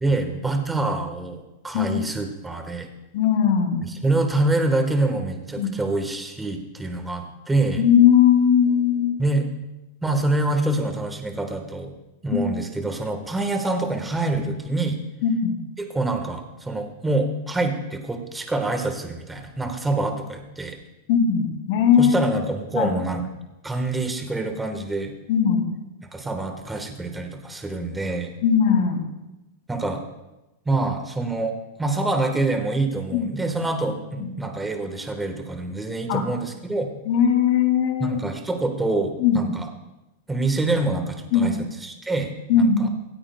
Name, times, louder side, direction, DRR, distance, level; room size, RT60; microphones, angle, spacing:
voice 1, 0.0-2.9 3.9-7.8 9.2-9.5 10.0-11.9 12.2-15.0 15.8-20.8 22.0-23.3 23.6-25.1 26.0-28.3 29.7-30.0 30.6-36.9 38.0-39.6 40.3-42.9, right 2 dB, 10° right, 4 dB, 1.3 m, -26 dB
voice 2, 3.1-3.8 5.6-5.7 7.8-9.2 12.3-12.4 15.2-15.6 21.1-22.2 22.7-22.9 25.3-25.7 28.4-29.1 33.1-33.3 34.2-34.4 36.1-36.2 37.1-38.2 39.2-39.5 41.3-41.5 42.5-42.9, left 8 dB, 60° left, 4 dB, 2.3 m, -19 dB
26.0 x 8.7 x 2.2 m, 1.0 s
supercardioid pair, 145°, 0 cm